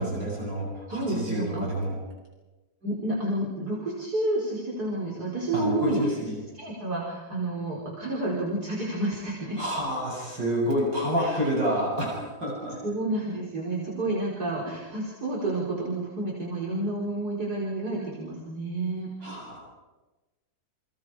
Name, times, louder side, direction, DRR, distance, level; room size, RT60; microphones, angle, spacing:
voice 1, 0.0-2.0 5.5-6.3 9.6-12.8 19.2-19.6, equal, 70° right, -3 dB, 8.7 m, -28 dB
voice 2, 0.9-1.7 2.8-6.0 6.5-9.6 11.2-11.4 12.8-19.1, right 2 dB, 55° right, -4 dB, 5.1 m, -30 dB
30.0 x 29.5 x 4.9 m, 1.1 s
omnidirectional pair, 2.0 m